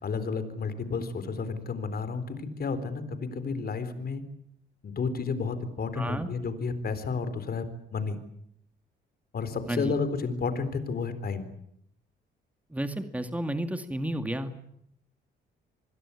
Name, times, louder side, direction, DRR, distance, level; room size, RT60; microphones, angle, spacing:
voice 1, 0.0-4.2 4.8-7.7 7.9-8.2 9.3-11.4, left 4 dB, 50° left, 12 dB, 4.1 m, -31 dB
voice 2, 6.0-6.3 9.7-9.9 12.7-14.5, right 1 dB, 5° right, 8 dB, 2.3 m, -31 dB
27.0 x 21.0 x 8.6 m, 0.73 s
cardioid pair, 90°, 20 cm